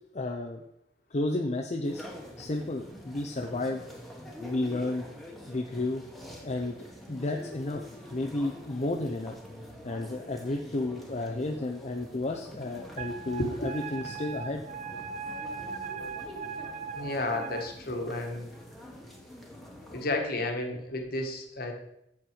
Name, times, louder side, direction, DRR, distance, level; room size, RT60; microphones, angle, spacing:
voice 1, 0.1-0.6 1.1-2.0 2.4-3.8 4.4-5.1 5.5-6.0 6.4-6.8 7.1-9.3 9.8-14.6, left 2 dB, 40° left, 1 dB, 0.6 m, -32 dB
sound 1, 1.8-20.1, left 1 dB, ahead, 1.4 m, -46 dB
Wind instrument woodwind instrument, 13.0-17.7, right 6 dB, 45° right, 0.5 m, -39 dB
voice 2, 17.0-18.5 19.9-21.7, left 2 dB, 55° left, 3 dB, 1.6 m, -32 dB
7.7 x 7.3 x 4.9 m, 0.80 s
head